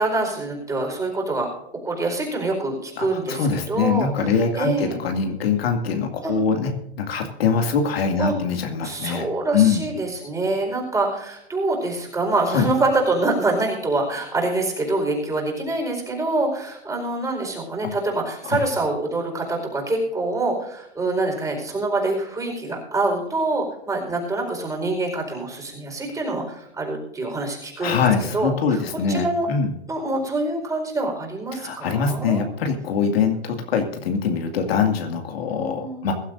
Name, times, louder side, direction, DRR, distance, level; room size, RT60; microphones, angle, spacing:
voice 1, 0.0-1.5 1.8-4.9 6.2-6.3 8.2-8.3 8.8-28.0 28.3-29.5 29.9-32.4 35.5-36.1, right 2 dB, 10° right, 0 dB, 4.6 m, -25 dB
voice 2, 3.0-6.7 7.0-9.3 9.5-9.9 12.5-12.7 17.8-17.9 18.4-18.6 27.8-29.7 31.5-36.1, left 6 dB, 65° left, 3 dB, 2.3 m, -23 dB
22.5 x 12.0 x 2.6 m, 0.78 s
hypercardioid pair, 125°, 33 cm